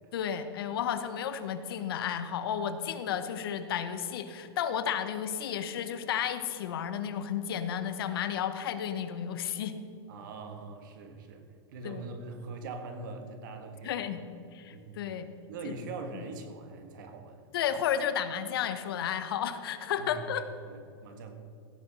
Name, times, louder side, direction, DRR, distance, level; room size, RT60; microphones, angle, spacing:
voice 1, 0.1-9.7 11.8-12.0 13.8-14.2 14.5-15.3 15.6-15.7 16.1-16.2 17.5-20.4, left 9 dB, 60° left, 11 dB, 0.9 m, -32 dB
voice 2, 10.1-11.4 11.7-14.1 14.7-15.1 15.5-17.4 20.0-20.2 20.6-21.3, right 3 dB, 50° right, 6 dB, 1.5 m, -42 dB
16.0 x 6.9 x 6.2 m, 2.5 s
supercardioid pair, 175°, 14 cm